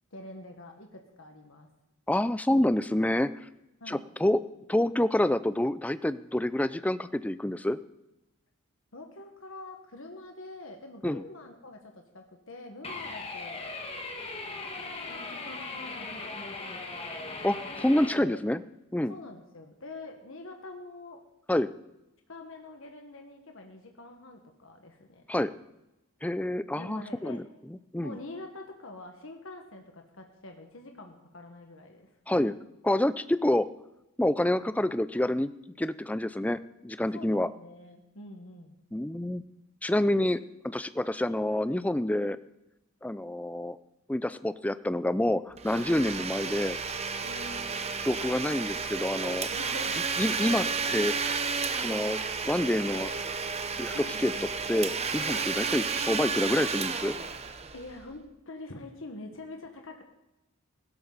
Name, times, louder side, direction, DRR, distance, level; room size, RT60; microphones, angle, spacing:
voice 1, 0.1-1.7 3.8-4.0 8.9-13.7 15.1-16.7 18.1-18.4 19.1-21.2 22.3-25.2 26.7-27.4 28.0-32.1 37.1-38.8 47.2-47.8 49.5-49.9 53.9-54.5 57.7-60.0, left 2 dB, 70° left, 3 dB, 1.6 m, -45 dB
voice 2, 2.1-3.3 3.9-4.4 4.7-7.8 11.0-11.2 17.4-18.6 18.9-19.1 21.5-21.7 25.3-25.5 26.2-27.4 27.9-28.2 32.3-32.6 32.8-33.7 34.2-35.5 35.8-37.5 38.9-39.4 39.8-40.4 40.6-42.4 43.0-43.8 44.1-46.8 48.0-49.5 50.2-51.1 51.8-52.2 52.4-53.1 53.8-53.9 54.2-54.3 54.7-57.2, left 1 dB, 5° left, 14 dB, 0.4 m, -27 dB
sound 1, 12.8-18.1, left 3 dB, 30° left, 1.8 m, -38 dB
Domestic sounds home sounds, 45.6-58.1, right 5 dB, 30° right, 0.9 m, -32 dB
16.5 x 13.0 x 4.1 m, 0.92 s
head